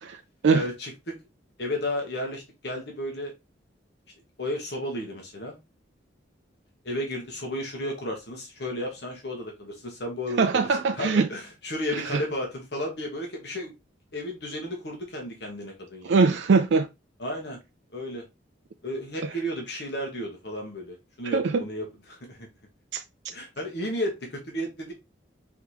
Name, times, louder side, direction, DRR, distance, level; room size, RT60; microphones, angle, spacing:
voice 1, 0.0-0.7 10.4-11.3 11.9-12.2 16.0-16.9 21.2-21.6 22.9-23.0, right 4 dB, 70° right, 0.4 m, -22 dB
voice 2, 0.5-1.2 1.6-3.3 4.4-5.6 6.8-13.7 14.1-16.2 17.2-17.6 17.9-18.2 18.8-22.5 23.3-24.9, left 1 dB, 60° left, 1.2 m, -33 dB
4.7 x 3.5 x 2.9 m
head